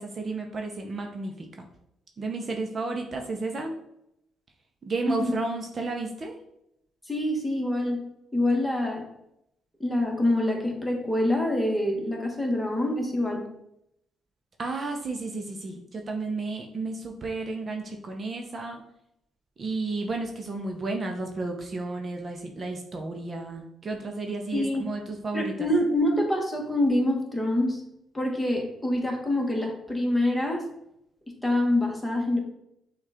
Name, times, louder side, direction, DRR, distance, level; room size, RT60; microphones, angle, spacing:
voice 1, 0.0-1.7 2.2-3.8 4.9-6.4 14.6-18.8 19.6-25.7, right 3 dB, 40° right, 3 dB, 0.6 m, -32 dB
voice 2, 7.1-8.0 8.3-9.0 9.8-13.4 24.5-24.8 25.3-27.8 28.1-30.6 31.4-32.4, left 1 dB, 10° left, 1 dB, 1.2 m, -25 dB
6.2 x 2.4 x 3.5 m, 0.80 s
cardioid pair, 90°, 0 cm